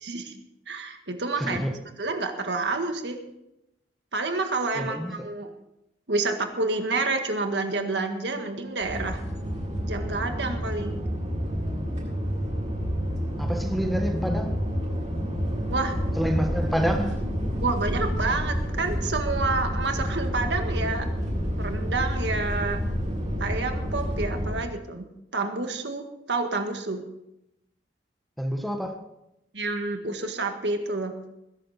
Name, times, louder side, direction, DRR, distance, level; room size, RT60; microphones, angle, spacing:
voice 1, 0.0-0.3 0.7-1.6 2.0-3.2 4.1-5.5 6.1-9.2 9.8-11.0 15.7-16.0 17.6-21.1 21.6-22.8 23.4-25.1 25.3-27.0 29.5-31.1, right 3 dB, 85° right, 1.8 m, -29 dB
voice 2, 1.4-1.7 4.7-5.3 13.4-14.6 16.2-17.2 28.4-29.0, equal, ahead, 1.5 m, -28 dB
sound 1, 8.8-24.6, equal, 40° right, 7.5 m, -29 dB
20.5 x 11.0 x 4.3 m
head